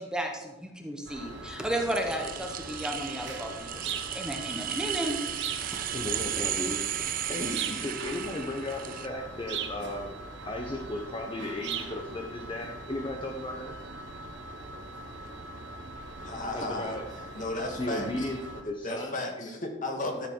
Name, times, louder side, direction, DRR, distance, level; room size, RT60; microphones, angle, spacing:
voice 1, 0.0-5.2, right 1 dB, 5° right, 2 dB, 1.0 m, -33 dB
sound 1, 1.1-18.6, right 1 dB, 90° right, 1.3 m, -43 dB
sound 2, 1.7-9.1, right 11 dB, 50° right, 0.5 m, -35 dB
sound 3, 3.8-4.1 5.4-5.7 7.5-7.9 9.5-9.8 11.6-11.9, right 9 dB, 70° right, 1.0 m, -34 dB
voice 2, 5.9-6.8 7.3-10.1 10.4-13.7 16.5-17.0 17.8-19.5, left 1 dB, 30° left, 2 dB, 0.9 m, -35 dB
voice 3, 16.2-17.0 17.4-18.3 18.8-20.3, left 2 dB, 45° left, 2 dB, 1.8 m, -34 dB
12.5 x 6.8 x 4.6 m, 1.1 s
head